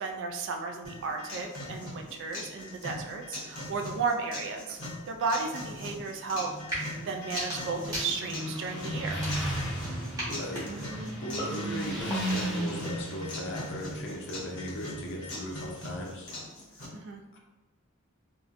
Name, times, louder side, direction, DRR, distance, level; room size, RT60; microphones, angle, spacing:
voice 1, 0.0-4.8 5.1-9.2 16.9-17.2, right 4 dB, 60° right, 4 dB, 0.3 m, -34 dB
sound 1, 0.8-16.9, left 1 dB, 80° left, 0.9 m, -41 dB
Motorcycle, 6.4-16.1, right 1 dB, 5° left, 0.8 m, -36 dB
sound 2, 6.6-6.9 7.2-8.5 9.1-9.8 10.2-12.5, equal, 15° right, 1.1 m, -38 dB
voice 2, 10.3-16.3 16.7-17.4, equal, 60° left, -1 dB, 0.5 m, -38 dB
2.7 x 2.1 x 2.5 m, 1.1 s
head